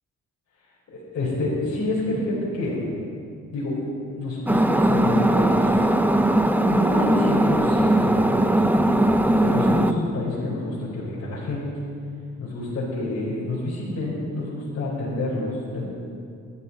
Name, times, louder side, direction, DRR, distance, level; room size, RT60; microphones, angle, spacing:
voice 1, 0.9-2.8 3.5-3.8 4.1-5.9 6.6-9.2 9.4-11.7 12.4-15.9, left 2 dB, 55° left, -6 dB, 4.4 m, -28 dB
sound 1, 4.5-9.9, right 1 dB, 5° right, 0.8 m, -19 dB
21.0 x 12.5 x 4.2 m, 2.4 s
cardioid pair, 90°, 30 cm